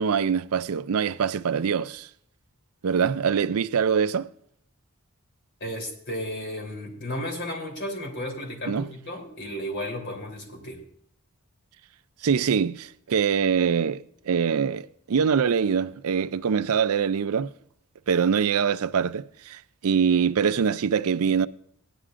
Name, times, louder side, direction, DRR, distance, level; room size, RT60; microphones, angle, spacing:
voice 1, 0.0-2.1 2.8-4.3 8.7-8.9 12.2-17.5 18.1-21.5, right 6 dB, 75° right, 0.4 m, -24 dB
voice 2, 5.6-10.8, equal, 55° left, 3.3 m, -34 dB
17.0 x 11.0 x 2.5 m
head